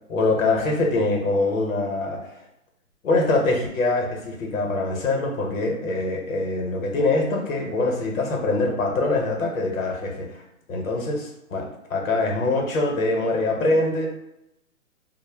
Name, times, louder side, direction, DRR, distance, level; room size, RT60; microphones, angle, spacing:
voice 1, 0.1-2.3 3.0-10.4 10.7-14.1, left 2 dB, 65° left, 0 dB, 0.9 m, -24 dB
2.1 x 2.0 x 3.2 m, 0.86 s
hypercardioid pair, 155°, 43 cm